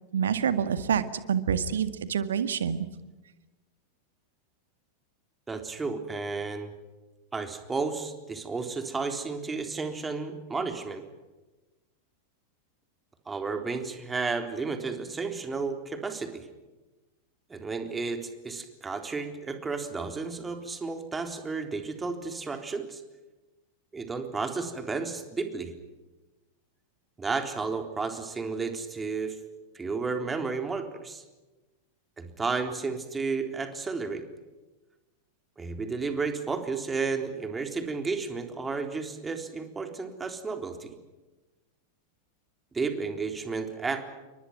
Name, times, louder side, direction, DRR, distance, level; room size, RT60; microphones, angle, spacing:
voice 1, 0.1-2.9, right 8 dB, 65° right, 12 dB, 2.0 m, -27 dB
voice 2, 5.5-6.7 7.3-11.0 13.3-16.5 17.5-23.0 23.9-25.7 27.2-29.4 29.7-31.2 32.2-34.2 35.6-40.9 42.7-44.0, right 4 dB, 15° right, 6 dB, 3.8 m, -32 dB
30.0 x 24.5 x 6.1 m, 1.1 s
figure-of-eight pair, 90°, 0 cm